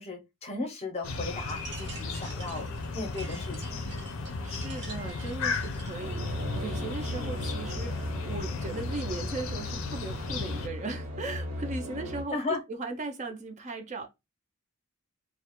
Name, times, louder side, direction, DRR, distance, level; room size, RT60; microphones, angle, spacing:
voice 1, 0.0-2.7 2.9-3.8 12.3-12.6, left 3 dB, 30° left, 0.6 m, -35 dB
sound 1, 1.0-10.7, left 3 dB, 75° left, 0.4 m, -35 dB
sound 2, 1.5-6.1, right 3 dB, 55° right, 0.7 m, -47 dB
voice 2, 4.4-12.4 12.7-14.1, right 3 dB, 35° right, 0.4 m, -38 dB
sound 3, 6.0-12.2, left 1 dB, 85° right, 0.8 m, -37 dB
2.3 x 2.0 x 2.8 m
head